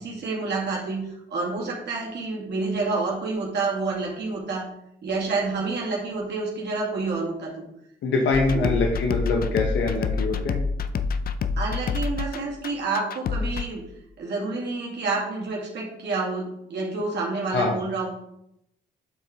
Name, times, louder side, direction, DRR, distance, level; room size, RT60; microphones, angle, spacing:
voice 1, 0.0-4.7 5.0-7.7 8.5-8.7 11.6-13.8 14.2-18.1, right 3 dB, 60° right, -3 dB, 2.1 m, -28 dB
voice 2, 8.0-10.5 17.5-17.7, left 3 dB, 70° left, 1 dB, 1.1 m, -24 dB
sound 1, 8.3-13.6, left 5 dB, 50° left, 0.5 m, -27 dB
8.8 x 4.5 x 3.7 m, 0.79 s
cardioid pair, 90°, 20 cm